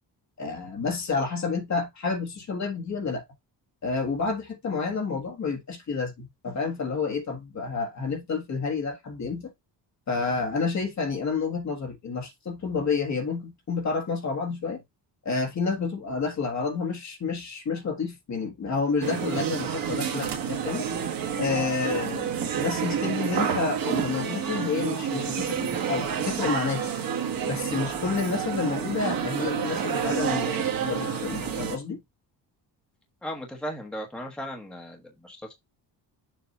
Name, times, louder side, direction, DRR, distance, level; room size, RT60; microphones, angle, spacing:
voice 1, 0.4-3.2 3.8-9.5 10.1-14.8 15.2-20.9 21.3-26.9 27.4-32.0, left 4 dB, 40° left, 1.5 m, -29 dB
sound 1, 19.0-31.8, right 7 dB, 50° right, 1.4 m, -29 dB
voice 2, 33.2-35.5, equal, ahead, 1.1 m, -36 dB
7.1 x 2.6 x 5.3 m
cardioid pair, 155°, 42 cm